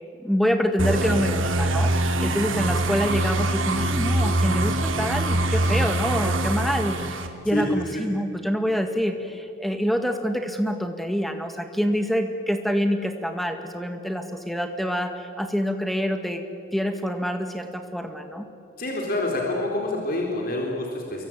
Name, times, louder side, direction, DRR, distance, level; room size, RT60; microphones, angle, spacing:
voice 1, 0.2-16.4 16.7-18.5, equal, ahead, 6 dB, 1.9 m, -26 dB
sound 1, 0.8-7.3, right 1 dB, 75° right, 2.4 m, -24 dB
voice 2, 18.8-21.2, left 1 dB, 45° left, 0 dB, 4.0 m, -27 dB
28.5 x 23.0 x 8.9 m, 2.4 s
head